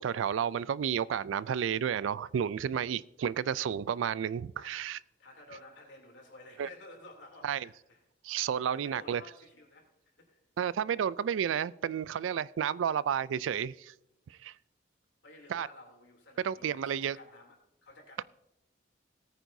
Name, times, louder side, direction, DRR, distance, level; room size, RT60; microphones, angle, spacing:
voice 1, 0.0-5.0 6.6-6.7 7.4-7.7 8.2-9.2 10.6-13.9 14.3-14.5 15.5-15.7 16.4-17.2, right 8 dB, 80° right, 21 dB, 0.3 m, -31 dB
voice 2, 5.2-8.0 8.6-10.4 15.2-17.5 17.8-18.2, left 2 dB, 70° left, 1 dB, 3.0 m, -53 dB
18.0 x 9.2 x 2.7 m, 0.88 s
head